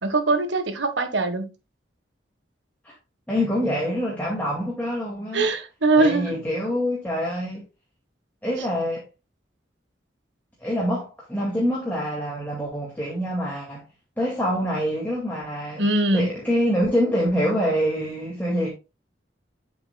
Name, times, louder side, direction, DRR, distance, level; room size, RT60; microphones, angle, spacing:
voice 1, 0.0-1.5 5.3-6.4 15.8-16.3, right 2 dB, 90° right, 1.4 m, -22 dB
voice 2, 3.3-5.5 6.0-7.6 8.4-9.0 10.6-13.8 14.2-15.9 16.1-18.7, equal, 10° left, 2.2 m, -25 dB
8.7 x 6.9 x 2.3 m
head